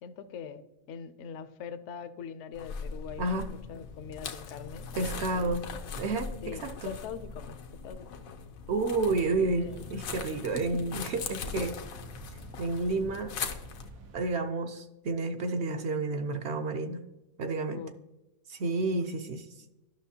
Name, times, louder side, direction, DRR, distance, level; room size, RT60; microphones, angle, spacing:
voice 1, 0.0-5.5 6.4-7.6 7.8-8.2 9.1-9.9 10.5-10.6 17.7-17.9, left 6 dB, 65° left, 11 dB, 0.8 m, -43 dB
sound 1, 2.5-13.9, left 5 dB, 85° left, 1.2 m, -40 dB
voice 2, 5.0-5.6 6.0-6.9 8.7-11.8 12.6-13.4 14.1-17.0 17.4-17.8 18.5-19.5, right 3 dB, 60° right, 6 dB, 0.8 m, -30 dB
sound 2, 9.2-14.3, right 1 dB, 85° right, 1.3 m, -49 dB
11.5 x 6.2 x 2.8 m, 1.0 s
omnidirectional pair, 1.4 m